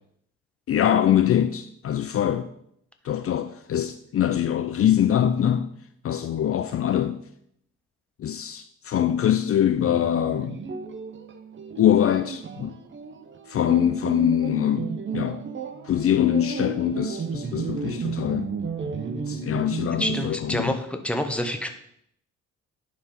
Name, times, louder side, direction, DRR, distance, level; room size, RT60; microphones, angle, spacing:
voice 1, 0.7-2.5 3.0-5.7 6.0-7.2 8.2-10.6 11.8-12.7 13.5-15.4 15.8-18.5 19.3-20.8, left 10 dB, 50° left, 0.5 m, -23 dB
sound 1, 9.8-20.2, right 5 dB, 40° right, 0.8 m, -33 dB
voice 2, 20.0-21.7, left 1 dB, 5° left, 1.2 m, -27 dB
11.0 x 4.8 x 4.3 m
cardioid pair, 90°, 30 cm